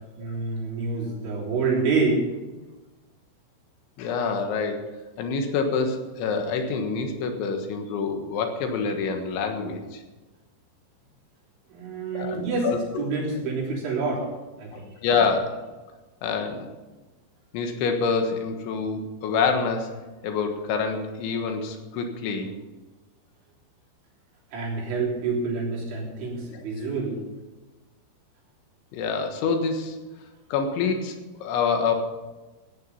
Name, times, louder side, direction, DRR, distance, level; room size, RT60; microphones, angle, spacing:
voice 1, 0.2-2.4 11.7-12.7 13.0-14.3 14.6-14.9 24.5-27.2, right 4 dB, 80° right, -4 dB, 5.8 m, -27 dB
voice 2, 4.0-4.9 5.2-10.0 12.1-13.1 14.7-15.6 16.2-16.7 17.5-20.0 20.2-22.5 28.9-30.0 30.5-31.9, left 5 dB, 80° left, 5 dB, 3.8 m, -26 dB
14.5 x 10.0 x 5.5 m, 1.2 s
omnidirectional pair, 5.3 m